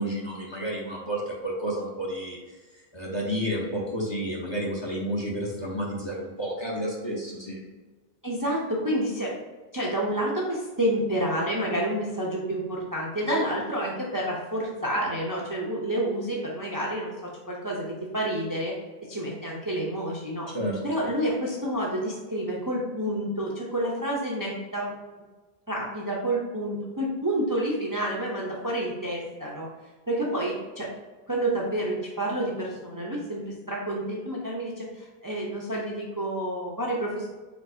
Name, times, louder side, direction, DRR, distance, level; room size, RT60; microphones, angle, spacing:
voice 1, 0.0-2.4 2.9-7.6 20.5-20.8, right 1 dB, 30° left, -3 dB, 0.8 m, -30 dB
voice 2, 8.2-9.3 9.7-17.1 17.5-18.7 19.1-20.5 20.8-24.9 25.7-29.7 30.1-30.9 31.3-33.4 33.7-37.3, right 1 dB, 25° right, -4 dB, 0.6 m, -29 dB
4.5 x 4.0 x 2.7 m, 1.2 s
omnidirectional pair, 1.0 m